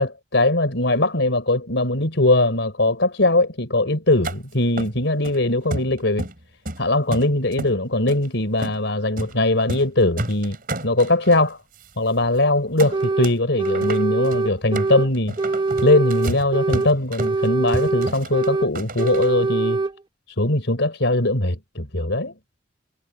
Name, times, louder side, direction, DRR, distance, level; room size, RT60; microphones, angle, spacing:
voice 1, 0.0-6.3 6.8-10.6 10.8-11.6 12.0-15.4 15.8-19.8 20.4-22.3, left 2 dB, 70° left, 3.7 m, -20 dB
sound 1, 4.2-4.4 4.8-5.4 5.7-6.4 6.6-7.7 8.1-8.3 8.6-8.8 9.2-9.3 9.6-9.9 10.2-11.4 11.8-11.9 12.2-12.4 12.8-13.4 13.6-19.3, right 1 dB, 50° right, 4.7 m, -31 dB
sound 2, 12.9-13.3 13.6-15.1 15.4-16.9 17.2-18.7 19.0-19.9, right 3 dB, 25° right, 0.8 m, -23 dB
head